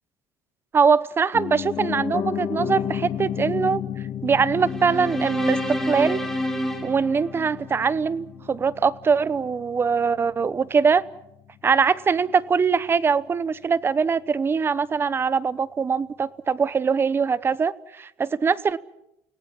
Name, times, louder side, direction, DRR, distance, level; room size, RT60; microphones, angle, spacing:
voice 1, 0.7-3.8 4.2-6.2 6.8-11.0 11.6-18.8, right 5 dB, 30° right, 18 dB, 0.9 m, -22 dB
Piano, 1.3-11.3 11.6-11.7, left 9 dB, 45° left, 1.8 m, -33 dB
sound 1, 4.6-7.9, equal, 5° left, 4.3 m, -28 dB
30.0 x 17.5 x 7.6 m, 0.84 s
supercardioid pair, 100°, 8 cm